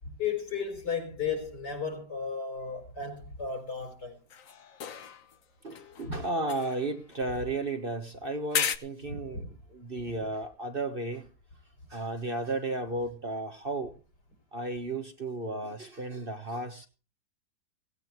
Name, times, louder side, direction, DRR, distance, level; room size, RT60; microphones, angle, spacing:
voice 1, 0.2-4.2 6.0-6.2 9.1-9.5, left 5 dB, 70° left, 5.3 m, -34 dB
sound 1, 4.3-5.4 5.7-7.8 8.5-8.8, left 8 dB, 55° left, 1.3 m, -35 dB
voice 2, 5.6-11.3 11.9-13.9 14.5-16.9, right 2 dB, 35° right, 1.4 m, -34 dB
17.0 x 16.5 x 3.1 m
omnidirectional pair, 1.8 m